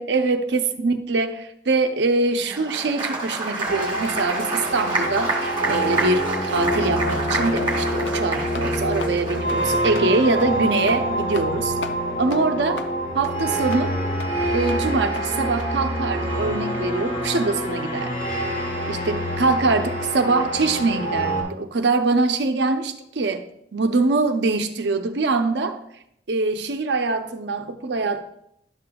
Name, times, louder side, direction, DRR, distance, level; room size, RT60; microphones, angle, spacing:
voice 1, 0.0-11.7 12.2-12.9 13.1-13.9 14.5-18.1 18.9-23.4 23.7-25.8 26.3-28.2, right 3 dB, 80° right, 7 dB, 0.6 m, -23 dB
Applause, 2.4-10.2, right 2 dB, 30° right, 1.7 m, -28 dB
sound 1, 3.7-21.4, right 1 dB, 70° left, 3.0 m, -26 dB
sound 2, 6.6-6.8 7.1-7.3 7.6-7.7 8.0-8.2 8.5-8.7 9.0-9.2 9.5-9.6 9.9-10.1 10.4-10.5 10.9-11.0 11.3-11.5 11.8-12.0 12.3-12.4 12.8-12.9 13.2-13.4 13.7-13.9 14.2-14.3 14.7-14.8 15.2-15.3 15.6-15.7, left 4 dB, 85° left, 0.6 m, -37 dB
11.5 x 6.8 x 2.3 m, 0.75 s
head